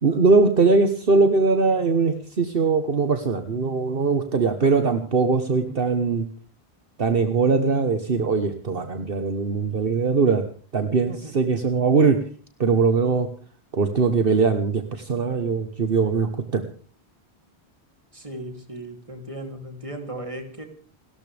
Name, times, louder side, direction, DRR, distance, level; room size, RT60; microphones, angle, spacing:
voice 1, 0.0-6.3 7.0-10.4 10.7-12.2 12.6-13.3 13.7-16.6, right 4 dB, 60° right, 7 dB, 1.5 m, -21 dB
voice 2, 11.1-11.5 18.1-20.6, right 1 dB, 30° right, 4 dB, 3.2 m, -37 dB
29.5 x 13.5 x 3.5 m, 0.41 s
omnidirectional pair, 1.1 m